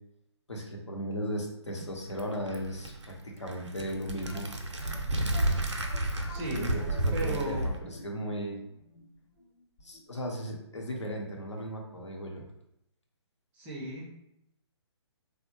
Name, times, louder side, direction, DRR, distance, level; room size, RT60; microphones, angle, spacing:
voice 1, 0.5-4.5 6.5-8.6 9.8-12.4, equal, 85° left, 0 dB, 0.8 m, -36 dB
sound 1, 1.7-7.8, right 1 dB, 85° right, 0.5 m, -32 dB
sound 2, 4.2-11.0 11.3-11.4 12.0-12.1 12.4-12.5, left 1 dB, 50° left, 0.9 m, -49 dB
voice 2, 6.3-6.8 7.1-7.7 13.5-14.1, right 1 dB, 10° right, -3 dB, 0.4 m, -35 dB
3.3 x 2.1 x 3.0 m, 0.79 s
figure-of-eight pair, 135°, 15 cm